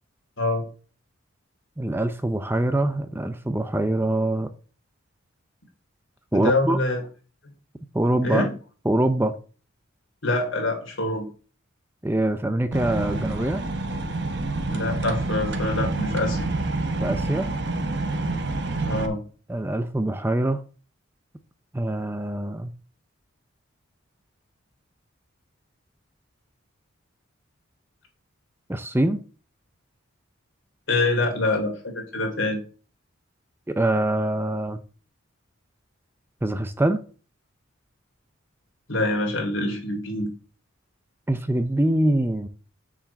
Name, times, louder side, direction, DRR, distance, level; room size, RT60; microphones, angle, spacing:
voice 1, 1.8-4.5 6.3-6.8 7.9-8.5 8.9-9.3 12.0-13.6 17.0-17.5 19.5-20.6 21.7-22.7 28.7-29.2 33.7-34.8 36.4-37.0 41.3-42.5, right 1 dB, 10° right, 0.5 m, -24 dB
voice 2, 6.3-7.0 8.2-8.5 10.2-11.3 14.7-16.5 18.8-19.2 30.9-32.6 38.9-40.3, left 2 dB, 65° left, 3.1 m, -25 dB
sound 1, 12.7-19.1, right 2 dB, 55° right, 1.1 m, -27 dB
7.2 x 5.1 x 7.0 m
head